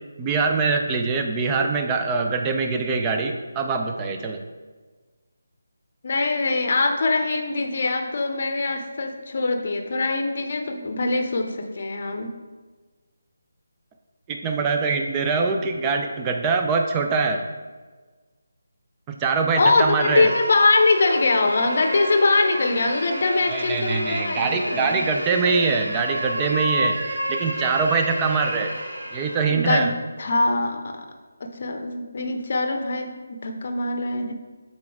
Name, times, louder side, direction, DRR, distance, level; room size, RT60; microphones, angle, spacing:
voice 1, 0.2-4.4 14.3-17.4 19.1-20.3 23.5-28.8 29.1-29.9, right 4 dB, 15° right, 3 dB, 0.5 m, -23 dB
voice 2, 6.0-12.3 19.6-25.0 29.5-29.9 30.2-31.1 31.4-34.3, left 3 dB, 45° left, 5 dB, 0.7 m, -23 dB
sound 1, 19.8-29.6, equal, 70° right, 1.4 m, -30 dB
6.7 x 4.3 x 3.5 m, 1.4 s
figure-of-eight pair, 150°, 0 cm